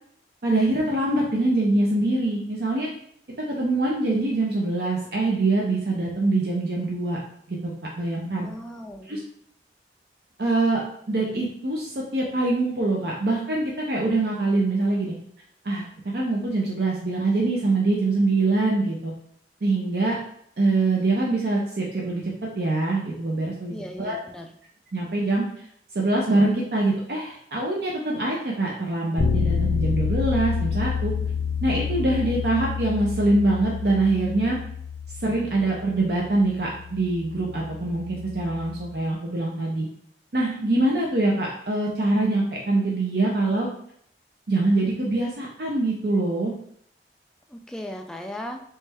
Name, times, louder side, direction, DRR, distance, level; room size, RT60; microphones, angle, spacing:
voice 1, 0.4-2.9 3.5-7.2 7.5-7.7 8.0-8.5 9.1-9.2 10.4-15.1 15.6-15.9 16.1-19.1 19.6-20.1 20.6-24.2 24.9-25.4 25.9-31.1 31.6-34.6 35.2-39.9 40.3-43.7 44.5-46.5, right 2 dB, 60° right, -3 dB, 0.6 m, -24 dB
voice 2, 8.4-9.1 23.7-24.5 47.5-48.6, left 1 dB, 5° left, 3 dB, 0.3 m, -37 dB
Bass guitar, 29.2-39.0, left 6 dB, 80° left, 0.5 m, -29 dB
3.2 x 3.2 x 3.4 m, 0.67 s
head